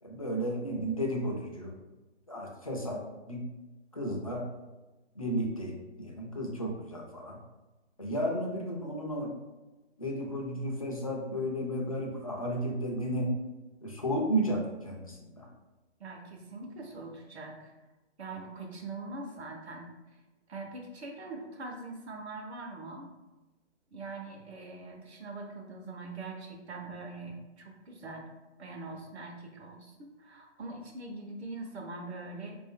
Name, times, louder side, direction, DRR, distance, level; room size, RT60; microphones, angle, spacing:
voice 1, 0.0-1.7 2.3-3.0 3.3-3.4 3.9-4.4 5.2-7.4 8.0-9.3 10.0-13.3 13.8-15.5, equal, 30° left, 0 dB, 0.4 m, -33 dB
voice 2, 16.0-17.7 18.2-20.2 20.5-23.1 23.9-28.3 28.6-32.6, right 3 dB, 65° right, 1 dB, 0.9 m, -43 dB
3.6 x 2.6 x 3.5 m, 1.1 s
hypercardioid pair, 175°, 35 cm